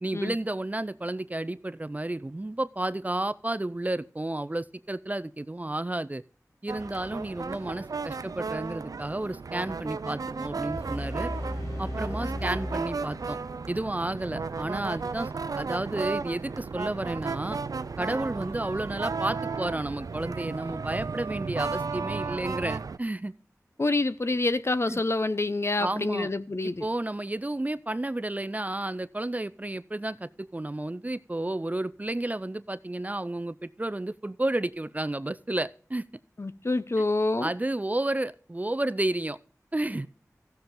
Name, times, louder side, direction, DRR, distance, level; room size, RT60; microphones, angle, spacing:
voice 1, 0.0-6.2 6.6-11.3 11.8-13.4 13.7-15.3 15.6-17.6 18.0-23.3 24.9-25.0 25.8-26.3 26.6-36.1 37.0-37.1 37.4-39.4 39.7-40.1, right 1 dB, 25° right, 0.4 m, -31 dB
sound 1, 6.7-23.0, right 4 dB, 85° right, 0.4 m, -34 dB
sound 2, 10.7-13.7, equal, 65° left, 3.9 m, -36 dB
voice 2, 23.8-26.8 36.4-37.5, left 2 dB, 45° left, 0.7 m, -27 dB
15.5 x 6.9 x 3.8 m
wide cardioid pair, 45°, 6 cm